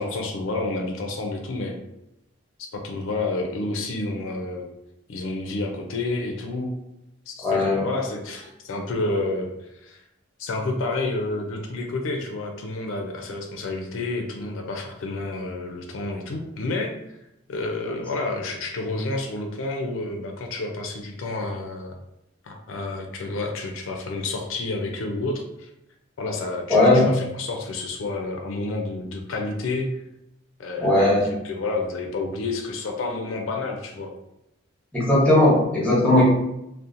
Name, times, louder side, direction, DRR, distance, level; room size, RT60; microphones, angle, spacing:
voice 1, 0.0-1.8 2.6-4.7 5.1-6.8 7.3-10.0 10.4-17.0 17.5-21.9 22.4-25.7 26.2-29.9 30.6-34.1 36.2-36.3, left 2 dB, 75° left, 3 dB, 0.4 m, -29 dB
voice 2, 7.4-7.8 26.7-27.1 30.8-31.3 34.9-36.2, left 1 dB, 5° left, -6 dB, 0.8 m, -17 dB
2.8 x 2.0 x 2.5 m, 0.85 s
head